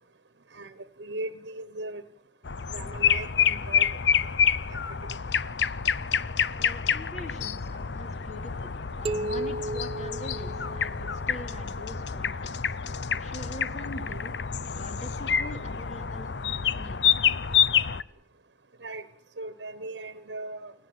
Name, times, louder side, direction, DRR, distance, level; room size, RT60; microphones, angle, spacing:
voice 1, 1.0-2.0 2.7-3.9 4.7-4.8 18.8-19.1 19.4-20.7, right 2 dB, 85° right, 12 dB, 1.2 m, -38 dB
sound 1, 2.4-18.0, left 7 dB, 80° left, 0.8 m, -28 dB
voice 2, 6.6-14.4 14.7-17.3, equal, 40° left, 4 dB, 2.7 m, -43 dB
sound 2, 9.0-11.5, right 2 dB, 30° right, 1.2 m, -34 dB
29.5 x 17.0 x 8.0 m, 0.80 s
head